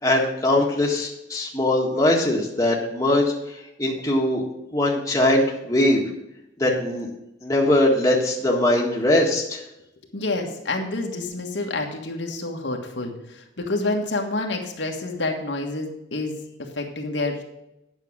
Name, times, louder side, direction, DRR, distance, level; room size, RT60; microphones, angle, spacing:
voice 1, 0.0-4.4 4.7-6.0 6.6-7.1 7.4-9.6, left 1 dB, 20° left, -1 dB, 1.6 m, -21 dB
voice 2, 10.1-17.4, left 2 dB, 80° left, 2 dB, 1.5 m, -28 dB
9.3 x 6.5 x 6.2 m, 0.86 s
head